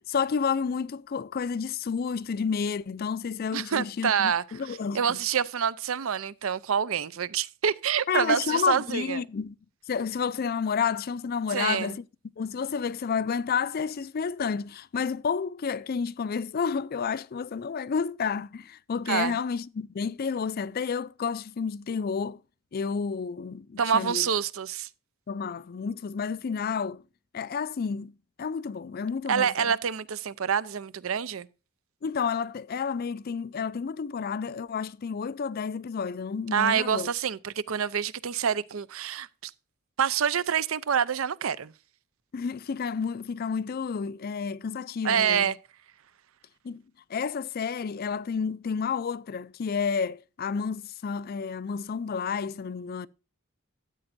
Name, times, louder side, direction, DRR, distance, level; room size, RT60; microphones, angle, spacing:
voice 1, 0.1-5.2 8.1-9.6 9.9-12.0 12.4-22.4 22.7-24.3 25.3-27.0 27.3-29.7 32.0-37.1 42.3-45.5 46.6-46.8 47.1-53.1, left 6 dB, 45° left, 0.4 m, -30 dB
voice 2, 3.5-4.4 4.9-9.2 11.5-11.9 19.1-19.3 23.8-24.9 29.3-31.5 36.5-39.5 40.0-41.7 45.0-45.6, right 7 dB, 75° right, 0.6 m, -27 dB
13.0 x 8.7 x 2.6 m
head